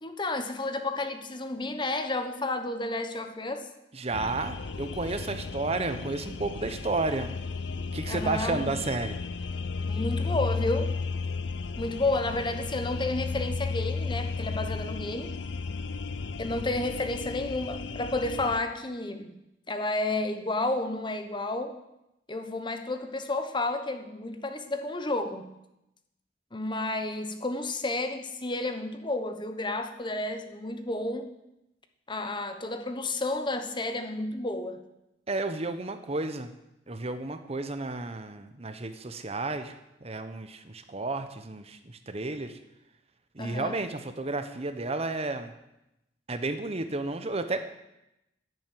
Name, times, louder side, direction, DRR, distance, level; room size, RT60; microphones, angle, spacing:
voice 1, 0.0-3.7 8.1-8.7 9.9-11.0 11.8-15.3 16.4-19.4 19.7-21.8 22.3-25.5 26.5-31.3 32.1-34.8 43.4-43.8, left 2 dB, 25° left, 8 dB, 1.2 m, -31 dB
voice 2, 3.9-7.4 7.9-9.2 35.3-36.5 36.9-42.6 43.3-45.5 46.3-47.6, right 2 dB, 35° right, 9 dB, 0.9 m, -32 dB
sound 1, 4.1-18.6, left 4 dB, 75° left, 0.6 m, -34 dB
11.0 x 10.5 x 9.2 m, 0.89 s
head